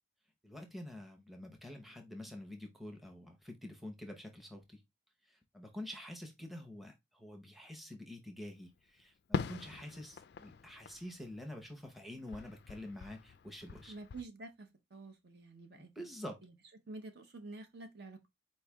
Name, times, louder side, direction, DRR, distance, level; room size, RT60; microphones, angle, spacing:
voice 1, 0.4-4.8 5.3-14.0 15.7-16.4, left 1 dB, ahead, 0.7 m, -47 dB
Fireworks, 9.3-12.0 12.3-14.2, left 5 dB, 50° left, 0.3 m, -43 dB
voice 2, 13.9-16.1 16.4-16.5 16.9-18.2, right 2 dB, 55° right, 0.7 m, -49 dB
4.4 x 3.1 x 3.4 m
head